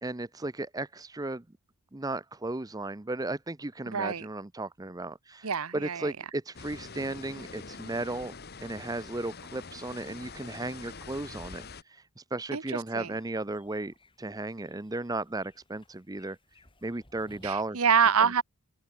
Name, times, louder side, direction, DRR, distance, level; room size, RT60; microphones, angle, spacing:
voice 1, 0.0-1.4 1.9-8.3 8.6-16.4 16.8-17.8 18.2-18.3, right 2 dB, 15° right, 0.6 m, -35 dB
voice 2, 3.9-4.3 5.4-6.1 12.5-13.1 17.4-18.4, right 6 dB, 80° right, 1.0 m, -26 dB
sound 1, 6.5-11.8, left 4 dB, 45° left, 1.4 m, -45 dB
sound 2, 12.7-17.7, left 1 dB, 20° left, 5.0 m, -61 dB
open air
head